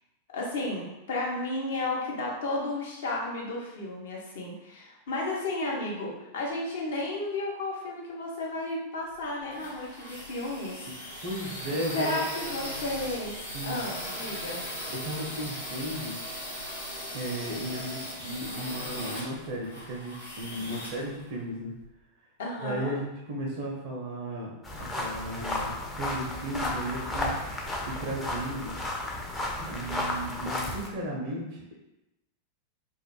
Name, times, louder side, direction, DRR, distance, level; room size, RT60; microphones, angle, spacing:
voice 1, 0.3-10.8 11.9-13.4 13.6-14.6 22.4-22.9, left 2 dB, 60° left, -3 dB, 0.6 m, -33 dB
sound 1, 9.1-21.8, equal, 90° left, 0.9 m, -39 dB
voice 2, 11.2-12.2 13.5-13.8 14.9-16.2 17.1-21.7 22.6-27.3 27.8-28.7 29.6-31.7, right 1 dB, 50° right, -2 dB, 0.4 m, -35 dB
sound 2, 24.6-30.9, left 1 dB, 15° left, 0.4 m, -33 dB
2.2 x 2.0 x 2.9 m, 0.92 s
figure-of-eight pair, 90°, 0 cm